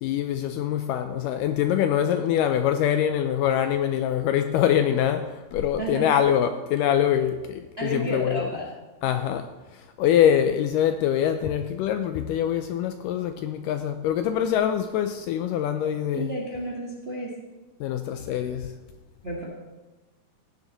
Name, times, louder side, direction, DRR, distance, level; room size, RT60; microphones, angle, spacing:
voice 1, 0.0-8.5 9.0-16.3 17.8-18.7, left 10 dB, 80° left, 2.0 m, -24 dB
voice 2, 5.8-6.1 7.8-8.7 16.1-17.3 19.2-19.4, right 1 dB, 30° right, 1.1 m, -31 dB
15.5 x 9.8 x 4.0 m
omnidirectional pair, 4.2 m